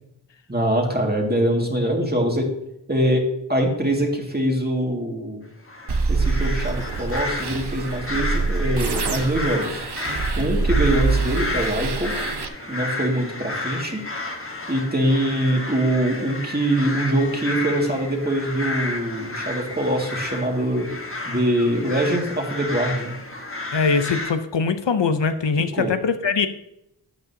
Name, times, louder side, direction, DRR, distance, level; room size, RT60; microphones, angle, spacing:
voice 1, 0.5-2.5 2.9-3.2 3.5-5.4 6.1-9.8 10.4-12.1 12.7-14.0 14.7-20.9 21.3-23.2 25.7-25.9, right 1 dB, 20° right, 1 dB, 2.1 m, -23 dB
sound 1, 5.7-24.3, left 2 dB, 30° left, 1.3 m, -32 dB
sound 2, 5.9-12.5, right 4 dB, 70° right, 0.8 m, -25 dB
voice 2, 23.7-26.5, left 5 dB, 85° left, 10 dB, 0.7 m, -22 dB
12.0 x 8.7 x 2.8 m, 0.82 s
wide cardioid pair, 50°, 42 cm